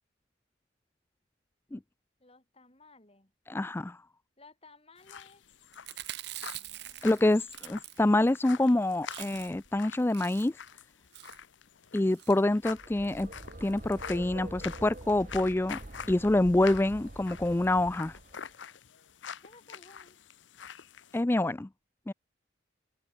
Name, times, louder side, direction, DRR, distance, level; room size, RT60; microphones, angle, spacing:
voice 1, 2.2-3.3 4.4-5.4 6.4-7.3 19.4-20.2, left 3 dB, 30° left, 4.8 m, -58 dB
voice 2, 3.5-4.0 7.0-10.6 11.9-13.3 13.6-15.8 16.1-18.2 21.1-21.7 22.1-22.2, left 1 dB, 10° left, 0.3 m, -26 dB
sound 1, 5.0-21.2, left 7 dB, 70° left, 0.8 m, -47 dB
Chewing mastication, 5.7-8.4 8.7-8.8 9.0-9.7 10.0-10.7 11.1-11.4 12.1-12.4 13.0-13.3 13.6-13.7 13.9-14.0, right 14 dB, 60° right, 1.1 m, -44 dB
sound 2, 12.5-18.5, right 1 dB, 40° right, 1.5 m, -46 dB
open air
head